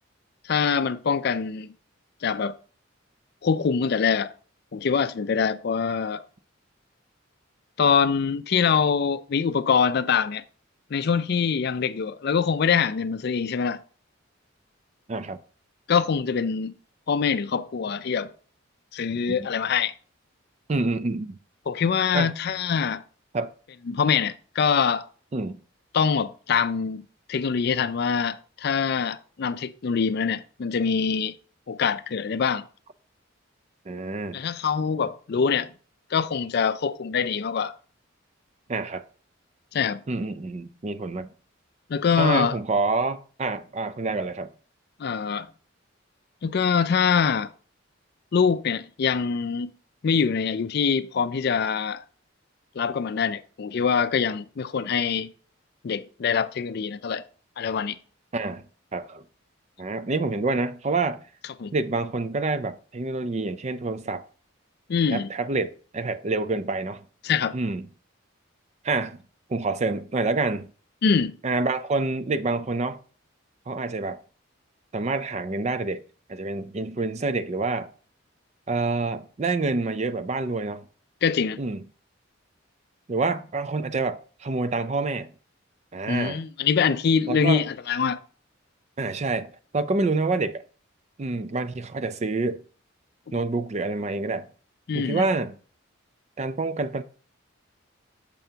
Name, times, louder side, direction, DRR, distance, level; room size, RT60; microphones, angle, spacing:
voice 1, 0.4-1.7 2.2-2.6 3.4-4.3 4.7-6.2 7.8-10.4 10.9-13.8 15.9-16.7 17.1-18.3 18.9-19.9 21.7-23.0 23.9-25.1 25.9-31.3 31.7-32.6 34.3-35.7 36.1-37.7 39.7-40.0 41.9-42.6 45.0-45.5 46.4-47.5 48.3-49.7 50.0-52.0 52.8-55.3 55.8-57.2 57.6-58.0 61.6-61.7 64.9-65.3 67.2-67.5 71.0-71.4 81.2-81.6 86.1-88.2 94.9-95.2, left 6 dB, 50° left, 0.4 m, -24 dB
voice 2, 20.7-21.4 22.1-22.3 23.3-23.5 25.3-25.6 33.9-34.4 38.7-39.0 40.1-41.3 42.2-44.5 58.3-58.6 58.9-59.2 59.8-61.2 61.7-64.2 65.1-67.0 67.5-67.9 68.8-69.2 69.5-70.7 71.4-73.0 73.7-74.2 74.9-76.0 76.3-77.9 78.7-80.9 81.6-81.8 83.1-85.3 85.9-86.4 87.3-87.6 89.0-90.6 91.2-92.6 93.3-94.5 94.9-95.5 96.4-97.0, right 3 dB, 35° right, 0.4 m, -27 dB
9.0 x 6.9 x 2.8 m
head